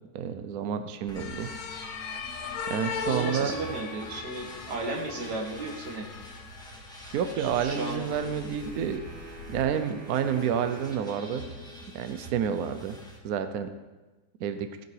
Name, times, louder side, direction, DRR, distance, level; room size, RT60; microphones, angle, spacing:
voice 1, 0.1-1.5 2.7-3.5 7.1-9.0 9.5-11.5 11.9-13.0 13.2-13.7 14.4-14.7, right 8 dB, 75° right, 9 dB, 0.8 m, -29 dB
sound 1, 1.1-9.6, left 6 dB, 80° left, 1.8 m, -40 dB
sound 2, 1.1-13.2, right 1 dB, ahead, 1.3 m, -46 dB
voice 2, 3.0-6.1 7.4-8.1, right 2 dB, 55° right, 1 dB, 2.1 m, -34 dB
Wind instrument woodwind instrument, 7.4-12.4, right 1 dB, 25° left, 3.4 m, -47 dB
16.0 x 5.9 x 4.6 m, 1.2 s
omnidirectional pair, 2.3 m